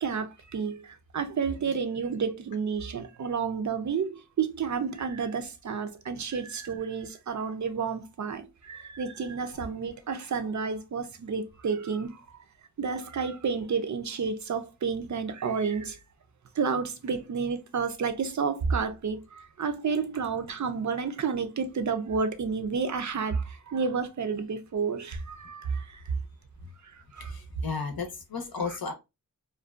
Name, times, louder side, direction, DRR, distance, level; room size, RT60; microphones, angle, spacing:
voice 1, 0.0-12.2 12.8-16.0 16.6-26.1 26.9-27.3, right 5 dB, 50° right, 0.5 m, -30 dB
voice 2, 27.2-28.9, left 5 dB, 75° left, 0.7 m, -34 dB
2.5 x 2.2 x 2.3 m
wide cardioid pair, 65°, 37 cm